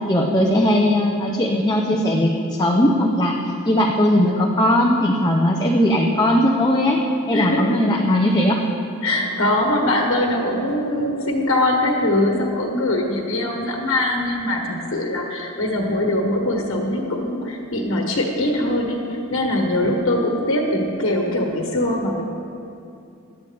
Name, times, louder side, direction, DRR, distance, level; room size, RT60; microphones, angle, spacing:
voice 1, 0.1-7.0 7.3-8.6, left 1 dB, 20° left, -1 dB, 0.7 m, -18 dB
voice 2, 7.3-7.8 9.0-22.2, left 1 dB, 70° left, 0 dB, 1.4 m, -22 dB
18.5 x 12.0 x 3.5 m, 2.6 s
head